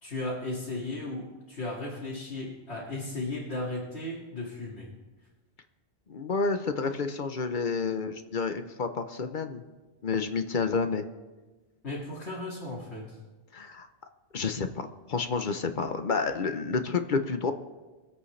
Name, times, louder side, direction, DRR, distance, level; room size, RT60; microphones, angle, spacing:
voice 1, 0.0-4.9 11.8-13.2, left 2 dB, 90° left, -6 dB, 2.7 m, -35 dB
voice 2, 6.1-9.6 10.0-11.0 13.5-13.9 14.3-17.5, left 4 dB, 50° left, 8 dB, 0.9 m, -29 dB
24.5 x 8.2 x 3.3 m, 1.2 s
omnidirectional pair, 1.1 m